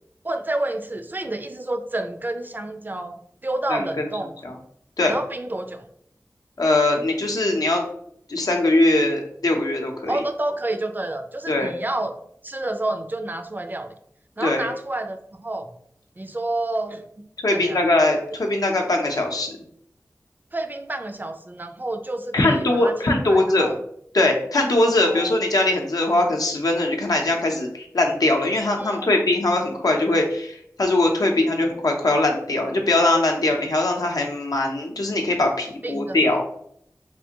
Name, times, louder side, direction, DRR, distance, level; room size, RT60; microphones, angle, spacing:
voice 1, 0.2-4.3 5.1-5.9 10.1-12.2 12.4-13.9 14.4-15.7 16.2-17.0 17.5-17.8 20.5-23.8 24.9-25.3 28.8-29.3 35.8-36.4, right 2 dB, 30° right, 8 dB, 0.3 m, -29 dB
voice 2, 3.7-4.1 4.4-4.5 5.0-5.1 6.6-7.8 8.3-10.2 11.5-11.7 14.4-14.7 17.4-19.5 22.3-23.7 24.1-36.4, left 2 dB, 85° left, 2 dB, 0.6 m, -21 dB
3.3 x 2.5 x 2.8 m, 0.67 s
wide cardioid pair, 65°, 6 cm